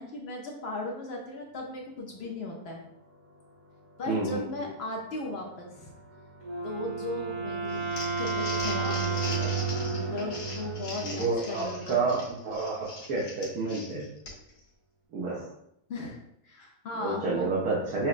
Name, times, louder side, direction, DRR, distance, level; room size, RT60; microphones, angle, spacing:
voice 1, 0.0-2.8 4.0-5.9 6.6-7.9 8.2-9.6 9.9-12.0 15.9-17.5, left 2 dB, 65° left, 0 dB, 0.6 m, -37 dB
sound 1, 2.5-13.3, right 5 dB, 90° right, 1.7 m, -38 dB
voice 2, 4.1-4.7 11.0-14.0 15.1-15.5 17.0-18.1, right 3 dB, 75° right, -6 dB, 1.2 m, -29 dB
Wind instrument woodwind instrument, 6.4-10.6, right 3 dB, 40° right, 0.8 m, -33 dB
Crumpling crinkling, 7.7-14.6, left 2 dB, 85° left, 1.6 m, -41 dB
5.7 x 2.1 x 2.4 m, 0.77 s
omnidirectional pair, 1.6 m